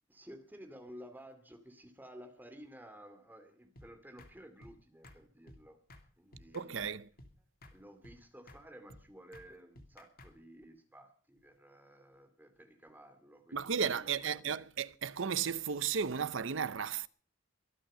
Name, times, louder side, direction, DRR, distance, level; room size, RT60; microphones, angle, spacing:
voice 1, 0.1-5.8 6.2-6.9 7.7-14.7, equal, 10° right, 2.4 m, -54 dB
sound 1, 3.8-3.9 4.2-4.3 4.6-4.8 5.0-5.2 5.5-5.6 5.9-6.1 6.3-6.9 7.2-7.3 7.6-7.8 8.0-8.2 8.5-8.6 8.9-9.0 9.3-9.5 9.8-10.3, left 1 dB, 50° left, 2.6 m, -54 dB
voice 2, 6.5-7.1 13.5-17.1, right 6 dB, 70° right, 0.7 m, -34 dB
23.5 x 9.0 x 5.5 m
head